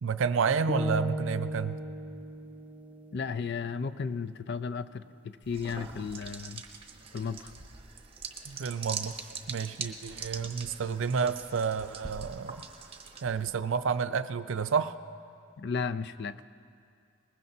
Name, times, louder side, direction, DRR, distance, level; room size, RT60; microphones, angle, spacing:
voice 1, 0.0-1.8 8.5-9.2 9.5-12.6 13.2-15.0, right 6 dB, 65° right, 11 dB, 0.5 m, -30 dB
sound 1, 0.7-4.8, equal, 10° right, 0.5 m, -36 dB
voice 2, 3.1-6.6 7.1-7.5 15.6-16.4, left 5 dB, 55° left, 13 dB, 0.5 m, -34 dB
sound 2, 5.4-13.5, right 5 dB, 30° right, 1.0 m, -43 dB
21.5 x 20.5 x 2.8 m, 2.4 s
head